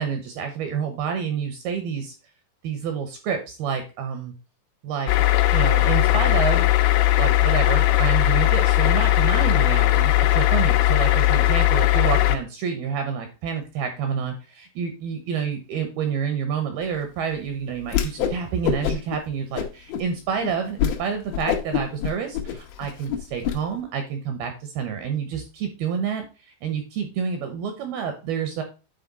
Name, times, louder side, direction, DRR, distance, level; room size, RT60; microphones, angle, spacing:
voice 1, 0.0-2.2 2.6-4.3 4.8-5.1 5.5-6.8 7.2-28.6, right 7 dB, 75° right, 6 dB, 2.4 m, -28 dB
sound 1, 5.1-12.4, left 16 dB, 90° left, 3.1 m, -18 dB
Whoosh swoosh swish, 17.9-18.4 18.6-19.2 19.5-20.0 20.4-20.5 20.8-21.0 21.3-23.6, left 9 dB, 75° left, 2.3 m, -25 dB
9.8 x 4.3 x 4.0 m, 0.31 s
omnidirectional pair, 5.4 m